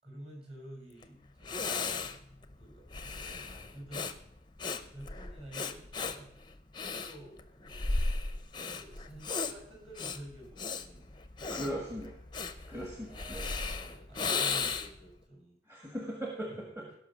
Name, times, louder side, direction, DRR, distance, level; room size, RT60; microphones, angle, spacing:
voice 1, 0.0-1.7 2.5-4.1 4.9-6.3 6.8-8.0 8.7-11.2 13.1-15.6 16.5-16.6 16.9-17.0, right 1 dB, 30° right, -1 dB, 4.8 m, -50 dB
Breathing, 1.0-1.1 1.4-15.1, left 4 dB, 25° left, 0.7 m, -36 dB
voice 2, 11.5-12.2 12.7-13.5 15.7-16.9, equal, 15° right, 0 dB, 1.5 m, -39 dB
17.5 x 5.8 x 6.8 m, 0.74 s
head